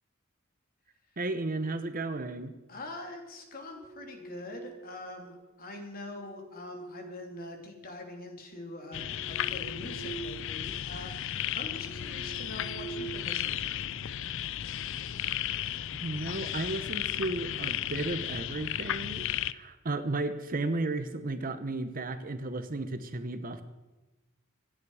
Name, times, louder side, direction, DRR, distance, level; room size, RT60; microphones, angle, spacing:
voice 1, 1.2-2.5 15.9-23.6, right 2 dB, 40° right, 10 dB, 1.0 m, -34 dB
voice 2, 2.7-14.1, left 2 dB, 45° left, 2 dB, 3.1 m, -44 dB
sound 1, 3.5-5.0 6.0-8.1 8.6-10.4 10.7-10.9 11.4-13.8, right 4 dB, 90° left, 3.1 m, -46 dB
sound 2, 8.9-19.5, left 11 dB, 65° left, 0.5 m, -34 dB
25.5 x 9.9 x 4.9 m, 1.1 s
head